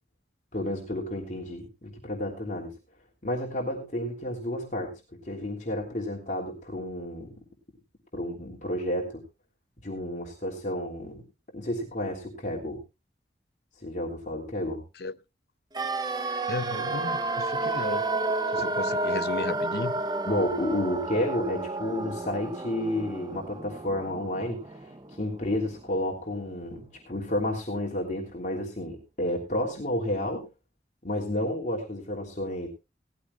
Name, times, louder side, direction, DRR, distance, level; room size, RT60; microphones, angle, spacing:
voice 1, 0.5-2.7 3.2-4.9 5.2-7.4 8.1-9.2 9.8-11.2 11.5-12.8 13.8-14.8 20.2-30.5 31.0-32.7, left 1 dB, 45° left, 3.1 m, -31 dB
sound 1, 15.7-25.7 25.9-26.0, right 2 dB, 25° right, 0.7 m, -31 dB
voice 2, 16.5-18.1 18.5-19.9, left 3 dB, 60° left, 0.6 m, -34 dB
18.0 x 14.5 x 2.3 m
head